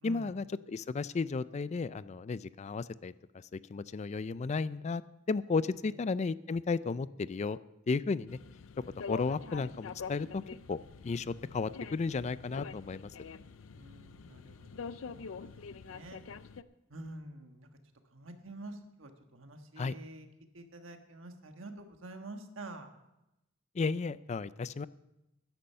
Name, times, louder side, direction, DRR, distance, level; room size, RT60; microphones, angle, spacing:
voice 1, 0.0-5.0 5.3-7.6 7.9-8.4 8.8-10.4 10.7-10.8 11.0-13.1 19.8-19.9 23.7-24.9, left 4 dB, 35° left, 17 dB, 0.3 m, -34 dB
sound 1, 8.3-16.6, left 5 dB, 90° left, 0.5 m, -46 dB
voice 2, 13.7-16.2 16.9-17.7 18.1-20.3 20.5-22.9, right 2 dB, 85° right, 6 dB, 1.4 m, -48 dB
13.0 x 10.5 x 5.6 m, 0.92 s
head